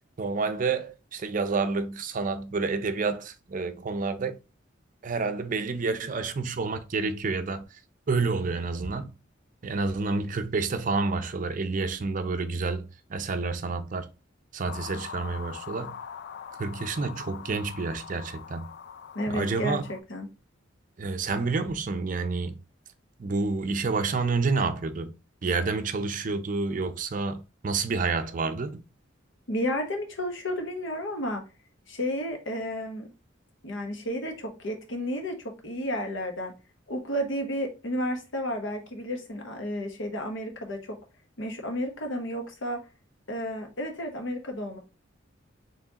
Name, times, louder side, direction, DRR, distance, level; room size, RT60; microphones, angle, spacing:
voice 1, 0.2-4.4 5.0-7.8 8.1-9.1 9.6-14.1 14.5-16.0 16.6-18.8 19.3-19.8 21.0-22.6 23.2-25.1 25.4-28.8, right 4 dB, 45° right, 0.5 m, -29 dB
sound 1, 14.7-20.0, left 7 dB, 60° left, 0.3 m, -43 dB
voice 2, 19.1-20.3 29.5-31.4 31.9-33.1 33.6-36.5 36.9-41.0 41.4-42.8 43.3-44.8, equal, 80° left, 1.1 m, -32 dB
4.6 x 3.2 x 2.8 m
head